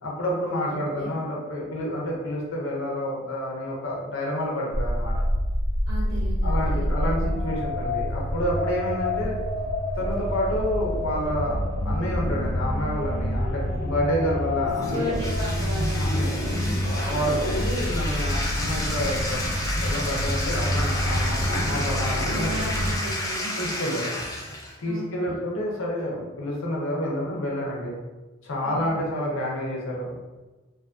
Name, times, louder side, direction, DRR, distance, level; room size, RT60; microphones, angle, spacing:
voice 1, 0.0-5.1 6.4-9.3 9.9-15.1 15.9-16.3 17.0-19.4 19.8-22.5 23.5-24.1 24.8-27.9 28.4-30.2, equal, 65° left, -3 dB, 0.7 m, -29 dB
voice 2, 0.7-1.1 5.8-7.6 14.8-16.9 22.3-23.6 24.8-25.4 28.6-29.0, equal, 70° right, -9 dB, 1.1 m, -36 dB
sound 1, 4.7-22.9, equal, 50° left, 1.1 m, -27 dB
Bathtub (filling or washing), 14.7-24.8, left 1 dB, 15° left, 0.4 m, -32 dB
2.6 x 2.4 x 2.4 m, 1.2 s
head